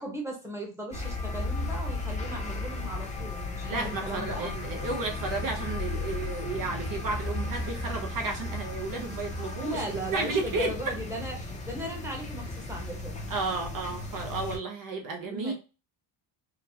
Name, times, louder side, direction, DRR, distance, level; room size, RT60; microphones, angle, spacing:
voice 1, 0.0-4.5 9.6-13.3 15.3-15.5, right 1 dB, 5° right, 0 dB, 1.0 m, -37 dB
sound 1, 0.9-14.6, left 2 dB, 15° left, 0.7 m, -35 dB
voice 2, 3.6-9.8 10.1-10.9 13.3-15.5, right 3 dB, 45° right, 3 dB, 0.7 m, -32 dB
3.8 x 2.3 x 2.8 m, 0.31 s
cardioid pair, 155°, 46 cm